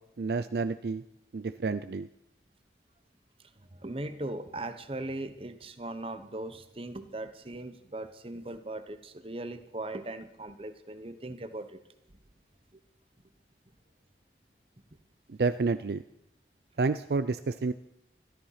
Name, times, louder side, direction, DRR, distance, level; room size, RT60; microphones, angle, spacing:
voice 1, 0.2-1.0 1.3-2.1 15.3-16.0 16.8-17.7, right 4 dB, 65° right, 12 dB, 0.4 m, -29 dB
voice 2, 3.7-11.8, right 2 dB, 30° right, 9 dB, 1.0 m, -39 dB
13.5 x 12.5 x 5.8 m, 0.82 s
head